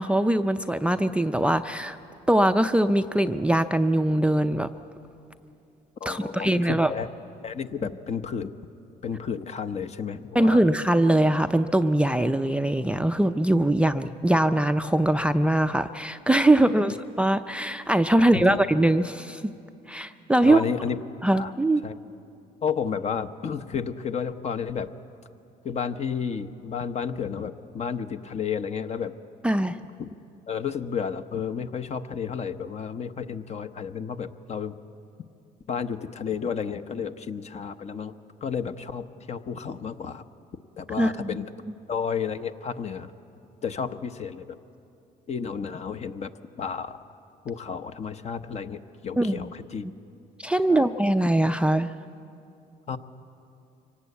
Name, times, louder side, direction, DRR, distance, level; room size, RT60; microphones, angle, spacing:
voice 1, 0.0-2.0 2.3-4.7 6.1-6.9 10.3-19.4 19.9-20.6 21.2-21.8 29.4-29.8 41.0-41.4 49.2-49.5 50.4-51.9, right 1 dB, 5° right, 10 dB, 0.5 m, -22 dB
voice 2, 6.0-7.1 7.4-8.5 9.0-10.6 16.6-16.7 18.2-18.6 20.4-21.0 21.3-21.5 21.8-21.9 22.6-24.9 25.6-29.1 30.0-30.1 30.5-34.8 35.7-38.1 38.4-40.2 40.8-41.5 41.9-43.1 43.6-44.5 45.3-46.3 46.6-47.0 47.4-49.8 50.7-50.9 52.9-53.0, left 6 dB, 40° left, 10 dB, 0.9 m, -32 dB
24.5 x 18.0 x 8.4 m, 2.6 s
cardioid pair, 110°, 17 cm